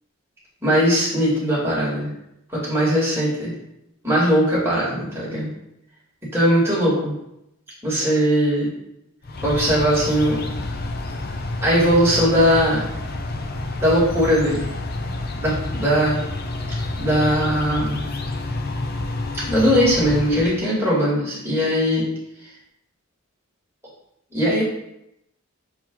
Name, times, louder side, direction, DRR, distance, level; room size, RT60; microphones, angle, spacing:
voice 1, 0.6-2.1 2.5-3.5 4.0-5.5 6.3-7.1 7.8-8.7 9.4-10.4 11.6-12.9 13.8-14.7 15.4-16.2 17.0-18.1 19.5-22.0 24.3-24.6, equal, 10° right, -8 dB, 2.6 m, -19 dB
sound 1, 9.2-20.6, left 2 dB, 45° left, 0.6 m, -29 dB
6.2 x 4.8 x 4.0 m, 0.82 s
head